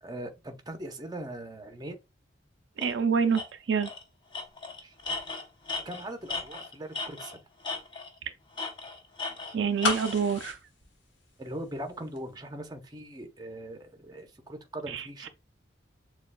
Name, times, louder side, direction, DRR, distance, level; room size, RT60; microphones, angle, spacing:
voice 1, 0.0-2.0 4.8-5.0 5.8-7.4 11.4-15.3, right 1 dB, 20° right, 0.7 m, -40 dB
Tools, 2.8-2.9 3.3-3.5 3.8-4.0 4.3-7.4 7.6-8.2 8.6-10.2, left 3 dB, 25° left, 0.7 m, -36 dB
voice 2, 2.8-3.4 3.7-3.9 9.5-10.6 14.9-15.3, right 6 dB, 80° right, 0.4 m, -27 dB
sound 1, 9.8-11.9 12.2-12.3, left 4 dB, 75° left, 1.1 m, -32 dB
6.6 x 2.3 x 2.2 m
head